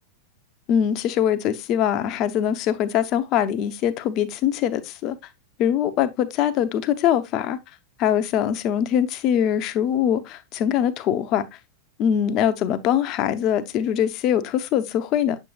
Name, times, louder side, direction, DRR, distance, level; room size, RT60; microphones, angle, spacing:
voice 1, 0.7-5.2 5.6-7.6 8.0-11.5 12.0-15.4, left 9 dB, 40° left, 0.8 m, -22 dB
7.6 x 7.2 x 2.3 m
figure-of-eight pair, 90°, 0 cm